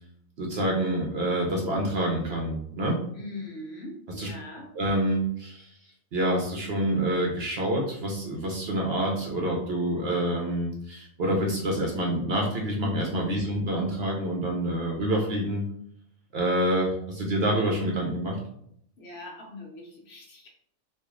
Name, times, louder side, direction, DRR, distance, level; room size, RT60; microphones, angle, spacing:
voice 1, 0.4-3.0 4.2-4.3 4.7-5.7 6.1-15.6 16.3-18.4, right 1 dB, 60° right, 0 dB, 0.7 m, -27 dB
voice 2, 3.1-4.7 19.0-20.5, left 2 dB, 60° left, 0 dB, 0.8 m, -41 dB
3.1 x 2.4 x 3.6 m, 0.71 s
omnidirectional pair, 1.4 m